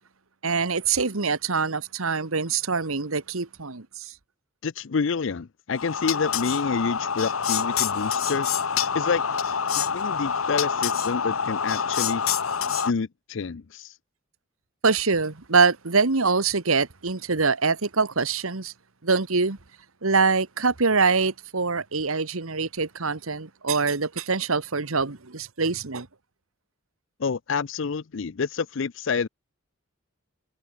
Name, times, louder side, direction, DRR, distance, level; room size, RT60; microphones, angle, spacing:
voice 1, 0.4-4.1 14.8-18.7 19.0-19.6 20.0-26.1, right 4 dB, 85° right, 1.5 m, -24 dB
voice 2, 4.6-9.2 9.8-12.2 12.8-14.0 27.2-29.3, left 5 dB, 65° left, 0.5 m, -28 dB
sound 1, 5.7-12.9, left 7 dB, 85° left, 1.1 m, -26 dB
head